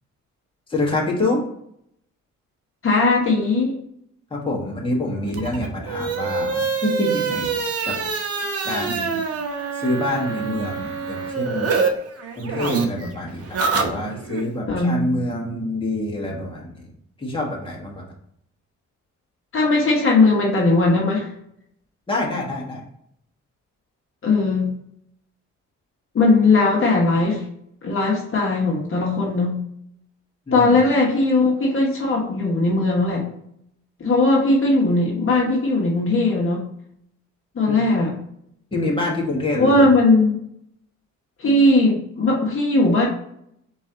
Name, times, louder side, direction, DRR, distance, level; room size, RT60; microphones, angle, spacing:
voice 1, 0.7-1.5 4.3-7.5 7.8-8.0 8.6-9.2 9.7-11.7 12.4-16.8 17.2-18.0 22.1-22.8 30.5-30.8 37.7-37.8 38.7-39.9, left 1 dB, 15° left, -2 dB, 1.5 m, -26 dB
voice 2, 2.8-3.7 14.7-15.0 19.5-21.3 24.2-24.7 26.1-27.4 27.8-29.6 30.5-33.3 34.0-36.6 37.5-38.1 39.6-40.4 41.4-43.1, left 2 dB, 45° left, -2 dB, 1.3 m, -18 dB
sound 1, 5.3-11.9 12.2-14.4, right 5 dB, 55° right, 1.0 m, -25 dB
4.3 x 3.1 x 3.8 m, 0.72 s
cardioid pair, 90°, 30 cm